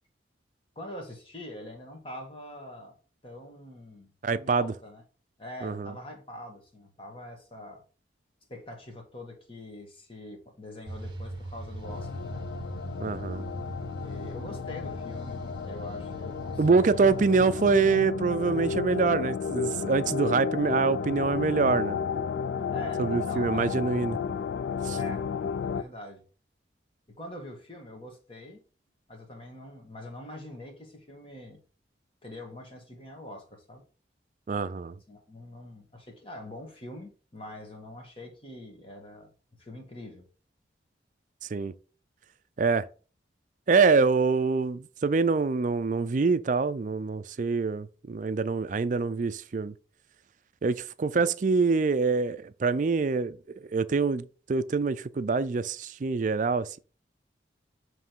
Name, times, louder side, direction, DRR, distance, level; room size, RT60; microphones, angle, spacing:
voice 1, 0.7-3.0 3.2-4.1 4.4-5.0 5.4-7.8 8.5-12.5 14.0-17.1 22.7-23.8 25.0-25.3 25.6-26.2 27.2-28.6 29.1-31.6 32.2-33.8 35.1-39.3 39.6-40.3 51.1-51.3, left 1 dB, 30° left, 1.5 m, -44 dB
voice 2, 4.2-4.7 5.6-5.9 13.0-13.5 16.6-22.0 23.0-24.2 24.8-25.0 34.5-35.0 41.5-41.7 42.6-42.9 43.7-49.7 50.6-53.4 53.7-56.8, right 4 dB, 45° right, 0.4 m, -25 dB
sound 1, 10.9-18.0, right 2 dB, 25° right, 1.0 m, -41 dB
sound 2, 11.8-25.8, left 6 dB, 80° left, 0.3 m, -32 dB
7.3 x 3.2 x 4.5 m
head